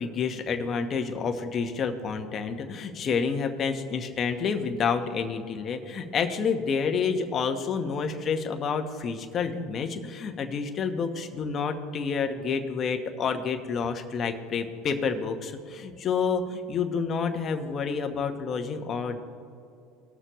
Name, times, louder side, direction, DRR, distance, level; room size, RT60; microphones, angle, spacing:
voice 1, 0.0-19.2, left 5 dB, 35° left, 6 dB, 1.1 m, -29 dB
19.5 x 6.6 x 3.1 m, 2.5 s
supercardioid pair, 110°, 0 cm